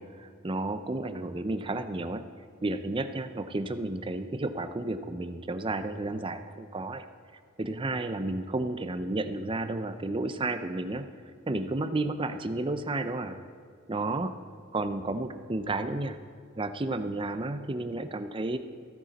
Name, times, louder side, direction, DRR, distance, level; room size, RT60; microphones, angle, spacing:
voice 1, 0.0-2.2 2.6-7.0 7.6-11.1 11.5-13.4 13.9-14.4 14.7-16.2 16.6-18.6, right 2 dB, 25° right, 10 dB, 0.5 m, -32 dB
15.0 x 10.0 x 4.1 m, 2.1 s
head